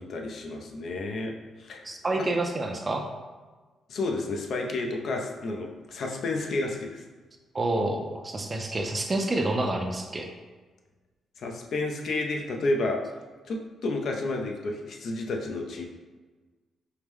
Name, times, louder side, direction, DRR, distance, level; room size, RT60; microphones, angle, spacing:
voice 1, 0.0-1.3 1.6-1.9 2.2-2.3 3.9-7.0 11.4-13.0 13.5-15.8, left 2 dB, 65° left, 2 dB, 0.5 m, -31 dB
voice 2, 1.8-3.0 7.5-10.3, right 2 dB, 30° right, 3 dB, 0.5 m, -28 dB
4.7 x 2.1 x 3.5 m, 1.3 s
cardioid pair, 90°, 0 cm